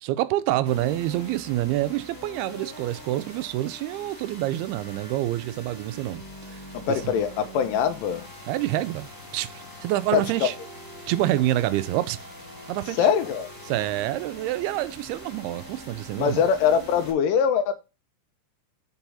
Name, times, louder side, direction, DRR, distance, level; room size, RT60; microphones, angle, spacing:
voice 1, 0.0-6.2 6.5-6.6 6.9-7.1 8.5-10.5 11.1-12.2 12.7-13.1 13.7-16.5, right 15 dB, 90° right, 2.6 m, -27 dB
sound 1, 0.7-17.1, equal, 15° left, 0.8 m, -43 dB
voice 2, 6.7-8.3 10.1-10.5 13.0-13.5 16.2-17.7, left 7 dB, 70° left, 2.3 m, -23 dB
6.0 x 4.9 x 5.5 m
omnidirectional pair, 4.4 m